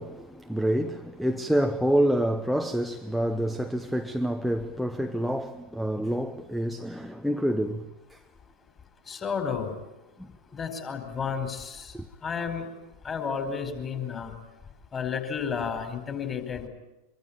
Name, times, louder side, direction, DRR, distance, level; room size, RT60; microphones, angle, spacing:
voice 1, 0.0-8.2 10.2-10.3 11.9-12.0, equal, ahead, 1.2 m, -27 dB
voice 2, 9.1-9.7 10.5-11.9 12.2-12.7 13.0-14.3 14.9-16.7, left 6 dB, 20° left, 4.8 m, -32 dB
24.5 x 24.0 x 8.8 m
figure-of-eight pair, 90°, 0 cm